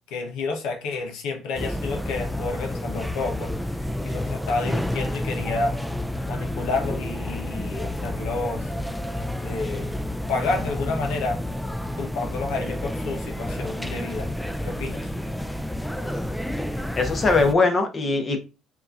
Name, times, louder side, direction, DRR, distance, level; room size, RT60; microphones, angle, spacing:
voice 1, 0.1-3.5 4.0-5.8 6.3-8.7 9.4-9.9 10.3-11.4 11.9-14.3 14.6-15.1, left 3 dB, 80° left, 1.0 m, -30 dB
sound 1, 1.5-17.5, left 1 dB, 5° left, 0.4 m, -30 dB
voice 2, 17.0-18.4, left 3 dB, 40° left, 1.1 m, -21 dB
4.5 x 2.9 x 2.5 m
supercardioid pair, 65°, 0 cm